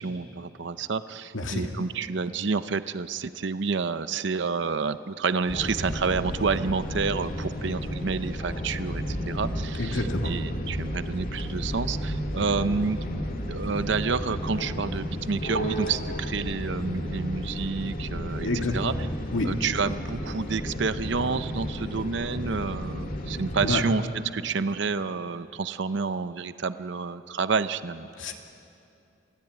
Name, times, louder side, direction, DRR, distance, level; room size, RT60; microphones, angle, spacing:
voice 1, 0.0-13.0 13.4-18.9 19.4-28.1, right 4 dB, 65° right, 12 dB, 0.6 m, -29 dB
voice 2, 1.3-1.7 9.8-10.3 18.4-18.8 19.3-19.5 23.6-23.8 28.2-28.3, left 2 dB, 80° left, 3 dB, 2.2 m, -28 dB
sound 1, 5.5-23.8, equal, 45° left, 2.2 m, -32 dB
27.5 x 16.0 x 9.2 m, 2.7 s
head